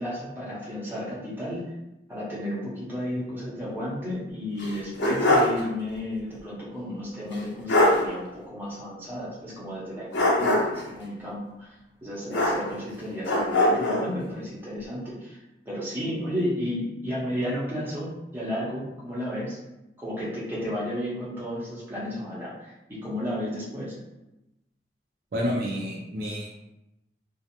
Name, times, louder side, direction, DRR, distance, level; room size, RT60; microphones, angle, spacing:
voice 1, 0.0-1.7 2.1-11.7 12.0-15.4 15.7-19.6 20.0-22.5 22.9-24.0, equal, 10° right, -8 dB, 0.7 m, -32 dB
sound 1, 4.6-5.6 5.9-6.0 7.3-7.4 7.7-8.0 10.1-10.9 12.3-12.9 13.2-14.1, left 1 dB, 90° left, 0.5 m, -22 dB
voice 2, 25.3-26.5, equal, 55° right, -3 dB, 0.4 m, -29 dB
2.4 x 2.0 x 2.8 m, 0.94 s
head